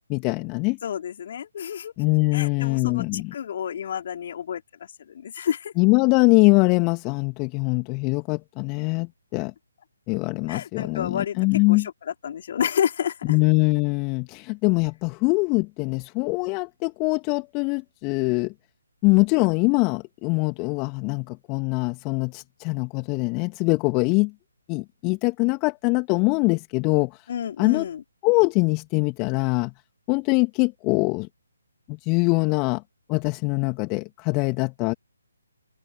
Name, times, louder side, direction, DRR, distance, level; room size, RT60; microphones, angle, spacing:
voice 1, 0.1-0.8 2.0-3.2 5.8-9.5 10.1-11.9 13.3-18.5 19.0-24.3 24.7-27.1 27.6-27.8 28.2-29.7 30.1-31.3 32.1-32.8 33.1-34.9, left 30 dB, 20° left, 2.4 m, -23 dB
voice 2, 0.8-1.9 2.3-5.7 10.5-11.4 11.7-13.4 27.3-28.0, left 8 dB, 40° left, 4.8 m, -30 dB
figure-of-eight pair, 140°, 0 cm